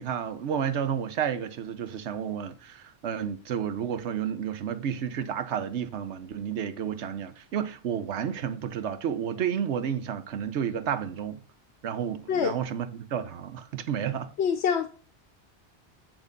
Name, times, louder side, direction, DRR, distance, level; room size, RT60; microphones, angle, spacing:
voice 1, 0.0-11.4 11.8-14.3, right 8 dB, 90° right, 1.0 m, -31 dB
voice 2, 14.4-14.9, left 7 dB, 75° left, 1.0 m, -25 dB
9.0 x 3.9 x 5.1 m
omnidirectional pair, 1.1 m